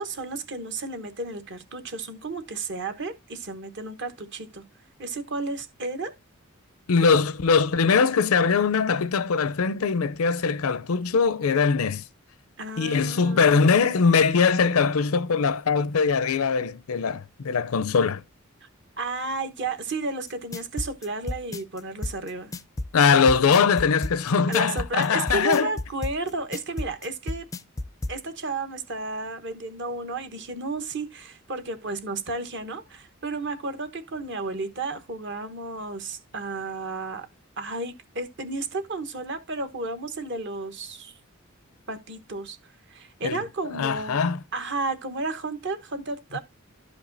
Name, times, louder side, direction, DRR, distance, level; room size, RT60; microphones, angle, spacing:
voice 1, 0.0-4.6 5.0-6.2 12.6-13.7 18.6-18.7 19.0-22.5 24.5-27.5 28.1-37.3 37.6-41.2 41.9-42.6 42.9-44.2 44.5-46.4, right 3 dB, 55° right, 1.1 m, -32 dB
voice 2, 6.9-12.0 12.8-18.2 22.9-25.7 43.2-43.4 43.7-44.4, left 5 dB, 80° left, 0.5 m, -21 dB
sound 1, 20.3-28.2, left 2 dB, 15° left, 0.4 m, -32 dB
12.5 x 5.1 x 2.6 m
head